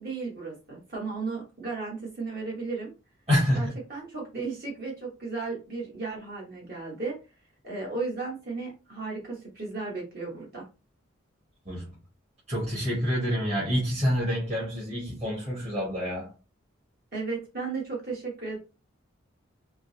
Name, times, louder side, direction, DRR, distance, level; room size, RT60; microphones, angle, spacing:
voice 1, 0.0-2.9 3.5-7.1 7.6-10.6 17.1-18.6, right 4 dB, 50° right, 1.1 m, -35 dB
voice 2, 3.3-3.7 11.6-11.9 12.5-16.3, equal, 30° right, 1.3 m, -27 dB
3.7 x 2.8 x 2.7 m
head